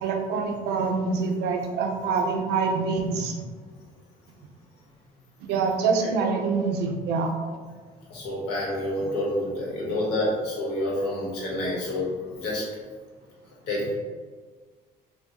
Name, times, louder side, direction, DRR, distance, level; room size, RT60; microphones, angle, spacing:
voice 1, 0.0-3.4 5.5-7.3, right 4 dB, 85° right, 3 dB, 0.6 m, -25 dB
voice 2, 8.1-12.6 13.7-13.9, left 1 dB, 85° left, -5 dB, 1.3 m, -28 dB
4.5 x 2.3 x 2.8 m, 1.5 s
cardioid pair, 110°, 17 cm